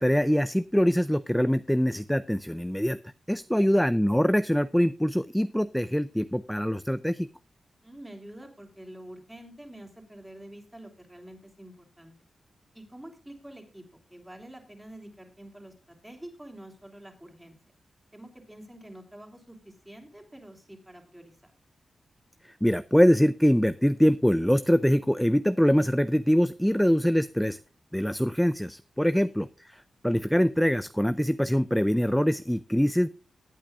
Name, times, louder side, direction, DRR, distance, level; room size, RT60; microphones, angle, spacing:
voice 1, 0.0-3.0 3.3-7.3 22.6-27.6 27.9-33.1, equal, 5° left, 14 dB, 0.4 m, -24 dB
voice 2, 3.5-3.8 7.8-12.1 12.7-17.8 18.1-21.5 29.0-29.4, right 1 dB, 10° right, 3 dB, 3.4 m, -47 dB
19.0 x 8.7 x 2.4 m, 0.36 s
cardioid pair, 65°, 0 cm